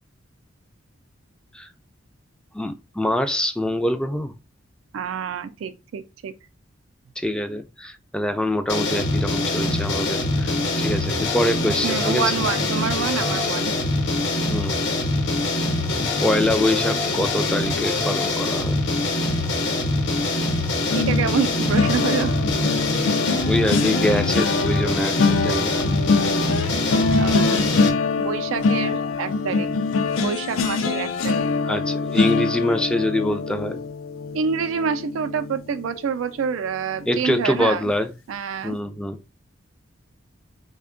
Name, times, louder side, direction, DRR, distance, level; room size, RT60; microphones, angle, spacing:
voice 1, 2.5-4.3 7.2-10.5 10.8-12.3 14.5-14.8 16.2-18.8 23.4-25.7 31.7-33.8 37.1-38.1 38.6-39.2, left 1 dB, 5° left, 0.3 m, -24 dB
voice 2, 4.9-6.3 11.8-13.7 20.9-22.4 26.6-27.7 28.2-29.7 30.2-31.5 34.3-37.9 38.3-38.8, right 6 dB, 80° right, 0.4 m, -27 dB
sound 1, 8.7-27.9, left 2 dB, 60° left, 0.9 m, -24 dB
sound 2, 20.9-36.0 36.4-36.7 37.0-37.2, left 4 dB, 80° left, 0.4 m, -24 dB
3.4 x 2.2 x 3.7 m
head